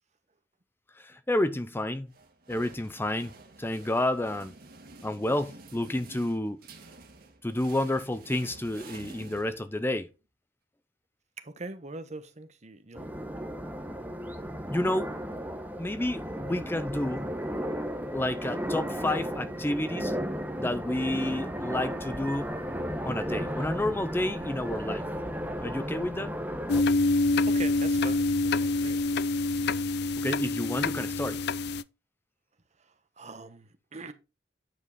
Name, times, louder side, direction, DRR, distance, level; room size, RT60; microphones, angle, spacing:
voice 1, 1.0-2.1 2.5-4.5 5.0-6.6 7.4-10.1 14.7-15.1 15.8-17.3 18.1-20.2 20.6-22.5 23.0-25.0 25.6-26.3 30.2-31.4, left 1 dB, 10° left, 0.5 m, -30 dB
sound 1, 2.1-10.0, right 3 dB, 55° right, 1.9 m, -50 dB
voice 2, 11.4-13.5 27.4-29.0 32.8-34.1, right 3 dB, 40° right, 1.1 m, -43 dB
sound 2, 12.9-26.8, equal, 10° right, 1.1 m, -34 dB
sound 3, 26.7-31.8, left 3 dB, 65° left, 0.4 m, -26 dB
9.3 x 5.4 x 3.9 m
head